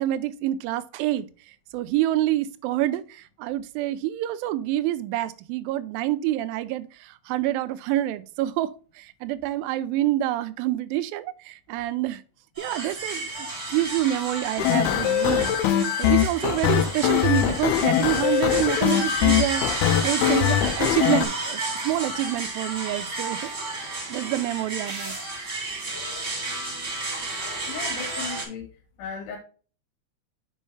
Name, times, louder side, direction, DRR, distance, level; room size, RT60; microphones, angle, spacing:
voice 1, 0.0-12.2 12.6-15.5 16.0-23.5 24.1-25.2, right 14 dB, 80° right, 2.2 m, -27 dB
sound 1, 12.6-28.4, right 2 dB, 35° right, 1.3 m, -32 dB
sound 2, 14.6-21.3, left 11 dB, 85° left, 2.6 m, -22 dB
voice 2, 27.7-28.7 29.0-29.4, left 6 dB, 70° left, 2.9 m, -36 dB
6.3 x 5.4 x 3.2 m
omnidirectional pair, 4.5 m